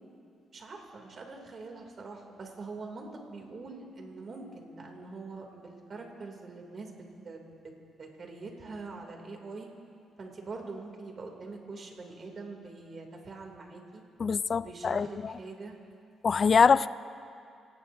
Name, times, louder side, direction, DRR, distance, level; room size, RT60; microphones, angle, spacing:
voice 1, 0.5-7.4 8.0-9.7 10.2-14.0 14.5-15.7, right 3 dB, 45° right, 2 dB, 2.8 m, -44 dB
voice 2, 14.2-15.3 16.2-16.9, left 5 dB, 40° left, 17 dB, 0.4 m, -24 dB
27.0 x 18.0 x 2.7 m, 2.4 s
cardioid pair, 90°, 0 cm